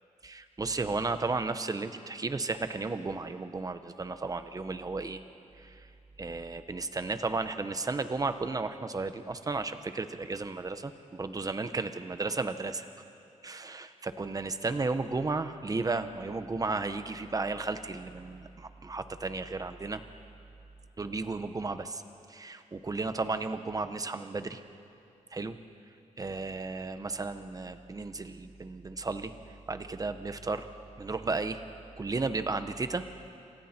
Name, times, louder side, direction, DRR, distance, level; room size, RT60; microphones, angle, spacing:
voice 1, 0.2-5.2 5.6-5.8 6.2-12.9 13.4-20.0 21.0-22.0 22.3-24.6 25.3-25.6 26.2-29.3 29.7-30.7 31.0-31.6 32.0-33.0, right 3 dB, 25° right, 9 dB, 1.1 m, -34 dB
28.0 x 26.0 x 4.5 m, 2.5 s
wide cardioid pair, 110°, 13 cm